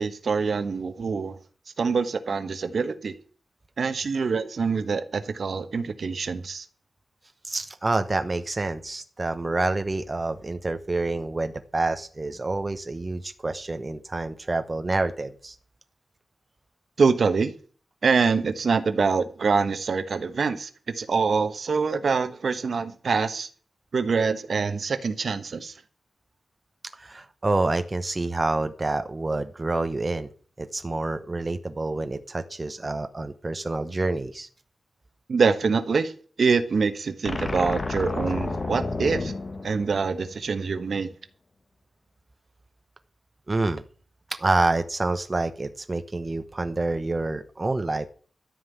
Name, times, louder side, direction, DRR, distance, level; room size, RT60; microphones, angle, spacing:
voice 1, 0.0-1.4 1.8-3.1 3.8-6.6 17.0-17.5 18.0-23.5 23.9-25.7 35.3-36.1 36.4-39.3 39.6-41.1, right 5 dB, 55° right, 1.2 m, -25 dB
voice 2, 7.4-15.6 26.9-30.3 30.6-34.5 43.5-43.8 44.4-48.1, right 2 dB, 25° right, 0.9 m, -27 dB
sound 1, 37.2-40.6, left 3 dB, 35° left, 1.5 m, -31 dB
13.5 x 5.6 x 9.3 m
wide cardioid pair, 160°, 0 cm